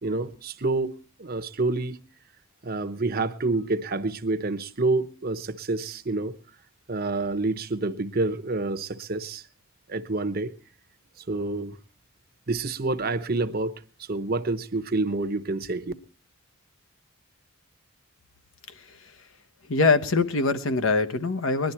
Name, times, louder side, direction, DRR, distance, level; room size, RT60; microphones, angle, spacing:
voice 1, 0.0-2.0 2.6-6.3 6.9-9.4 9.9-10.5 11.3-11.8 12.5-13.7 14.1-15.9, right 3 dB, 45° right, 0.9 m, -28 dB
voice 2, 19.7-21.7, left 3 dB, 65° left, 1.1 m, -23 dB
21.0 x 11.5 x 4.4 m
head